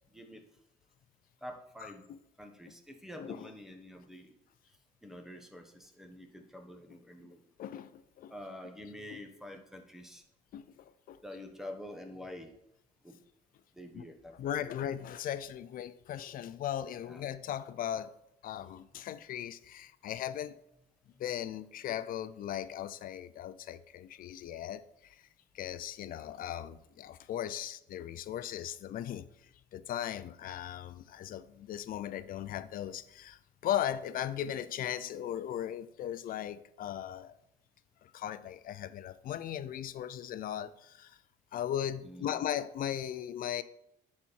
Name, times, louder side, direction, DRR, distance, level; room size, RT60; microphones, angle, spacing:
voice 1, 0.1-0.4 1.4-2.1 2.4-4.3 5.0-7.4 8.3-10.2 11.2-12.5 13.0-13.2 13.7-14.6 17.1-17.2 42.0-42.4, left 1 dB, 5° right, 1.2 m, -47 dB
voice 2, 1.8-2.2 3.2-3.5 7.6-8.3 9.1-9.2 10.5-11.2 13.9-14.0 14.4-18.2 18.4-20.5 21.2-25.2 25.5-29.3 29.7-37.3 38.0-41.2 41.5-43.6, left 10 dB, 55° left, 0.5 m, -38 dB
10.5 x 4.3 x 4.4 m
cardioid pair, 110°, 17 cm